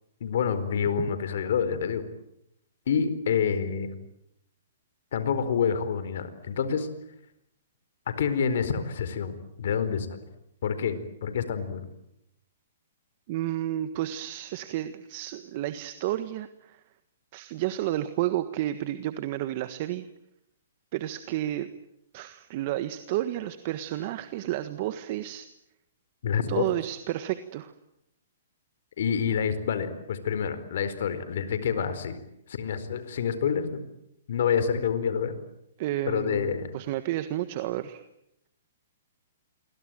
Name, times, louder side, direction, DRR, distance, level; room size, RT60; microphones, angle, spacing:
voice 1, 0.2-2.0 2.9-3.9 5.1-6.9 8.2-10.2 10.6-11.8 26.2-26.6 29.0-32.2 32.5-33.8 34.3-35.3 36.1-36.7, left 7 dB, 65° left, 12 dB, 4.4 m, -27 dB
voice 2, 13.3-16.8 17.3-20.0 20.9-21.7 22.1-25.5 26.5-27.7 35.8-38.0, right 14 dB, 45° right, 11 dB, 1.6 m, -31 dB
28.0 x 23.0 x 9.2 m, 0.81 s
hypercardioid pair, 140°, 0 cm